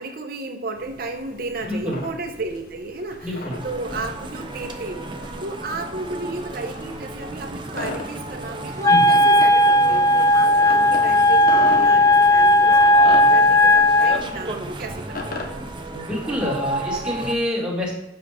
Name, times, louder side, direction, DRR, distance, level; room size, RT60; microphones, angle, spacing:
voice 1, 0.0-3.4 3.6-15.6, right 2 dB, 55° right, 6 dB, 1.0 m, -33 dB
sound 1, 0.8-15.7, left 2 dB, 50° left, 1.1 m, -38 dB
voice 2, 1.6-2.0 3.2-3.6 8.9-9.1 15.9-17.9, left 1 dB, 5° right, -4 dB, 2.3 m, -27 dB
sound 2, 3.5-17.3, right 1 dB, 25° right, 0.7 m, -34 dB
Wind instrument woodwind instrument, 8.8-14.2, left 1 dB, 20° left, 0.4 m, -15 dB
7.4 x 6.2 x 5.0 m, 0.89 s
head